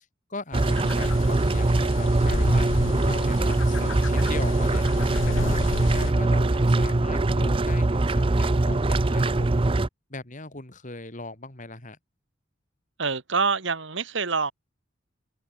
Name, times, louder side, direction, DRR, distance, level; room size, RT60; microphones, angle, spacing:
voice 1, 0.3-2.7 3.0-4.8 5.2-5.6 5.9-9.6 10.1-12.0, left 2 dB, 40° left, 3.4 m, -39 dB
sound 1, 0.5-6.1, left 3 dB, 80° left, 0.9 m, -33 dB
sound 2, 0.5-9.9, right 2 dB, 25° right, 0.6 m, -22 dB
voice 2, 13.0-14.5, right 4 dB, 70° right, 1.8 m, -26 dB
open air
head